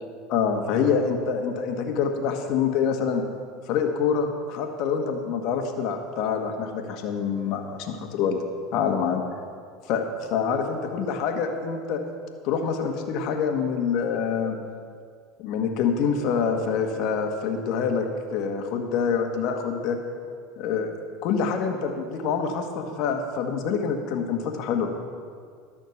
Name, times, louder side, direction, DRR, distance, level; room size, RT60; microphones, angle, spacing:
voice 1, 0.3-3.2 3.7-8.4 8.7-9.2 9.9-12.0 12.4-14.6 15.4-20.0 20.6-20.9 21.2-24.9, left 6 dB, 60° left, 4 dB, 1.5 m, -26 dB
12.5 x 6.4 x 7.1 m, 2.1 s
hypercardioid pair, 85°, 0 cm